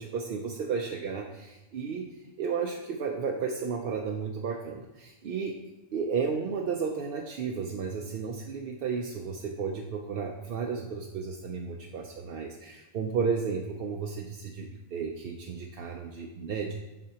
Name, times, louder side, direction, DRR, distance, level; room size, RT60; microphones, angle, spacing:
voice 1, 0.0-2.1 2.4-5.6 5.9-16.7, right 5 dB, 65° right, 1 dB, 0.7 m, -33 dB
7.4 x 6.0 x 2.9 m, 1.0 s
omnidirectional pair, 1.1 m